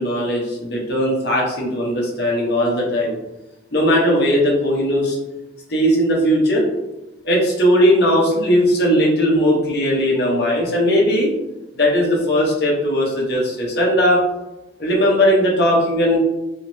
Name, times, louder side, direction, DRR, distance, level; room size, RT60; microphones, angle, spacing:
voice 1, 0.0-3.1 3.7-5.2 5.7-6.7 7.2-11.3 11.7-14.2 14.8-16.2, equal, 55° left, -3 dB, 1.0 m, -18 dB
3.2 x 2.9 x 3.0 m, 0.97 s
head